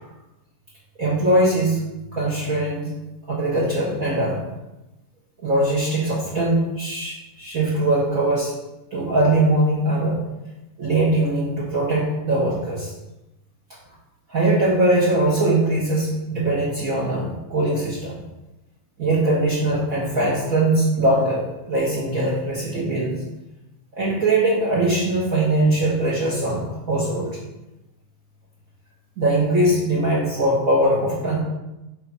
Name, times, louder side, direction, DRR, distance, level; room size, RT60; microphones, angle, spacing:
voice 1, 1.0-1.8 2.1-2.9 3.3-4.4 5.4-8.5 8.9-10.2 10.8-12.9 14.3-18.2 19.0-23.2 24.0-27.4 29.2-31.4, right 1 dB, 80° right, -7 dB, 0.7 m, -21 dB
5.6 x 3.9 x 5.8 m, 0.97 s
omnidirectional pair, 3.6 m